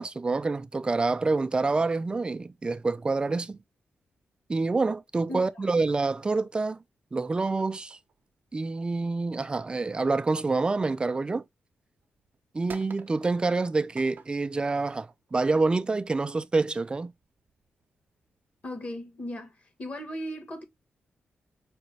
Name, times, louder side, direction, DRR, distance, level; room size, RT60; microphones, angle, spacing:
voice 1, 0.0-3.6 4.5-6.8 7.1-8.0 8.5-11.4 12.5-17.1, right 3 dB, 25° right, 0.4 m, -27 dB
sound 1, 7.2-11.4 12.0-16.4 17.2-18.7, right 5 dB, 60° right, 0.7 m, -51 dB
voice 2, 18.6-20.6, equal, 45° left, 1.4 m, -37 dB
4.9 x 2.2 x 3.2 m
cardioid pair, 80°, 4 cm